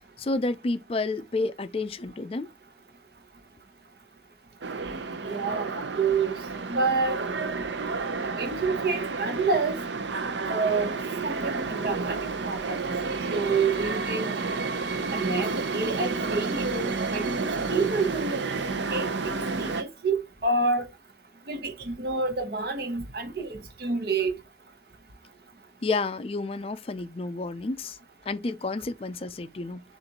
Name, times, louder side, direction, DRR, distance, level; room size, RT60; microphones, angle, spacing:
voice 1, 0.2-2.5 25.8-28.0 28.3-29.8, left 3 dB, 30° left, 0.4 m, -30 dB
sound 1, 4.6-19.8, right 4 dB, 80° right, 0.7 m, -30 dB
voice 2, 5.3-5.7 5.9-6.3 6.7-7.2 8.2-9.8 10.5-11.0 11.2-12.2 12.4-13.0 13.3-14.3 15.1-20.9 21.5-24.4, right 4 dB, 60° right, 0.9 m, -28 dB
6.6 x 2.5 x 2.8 m
head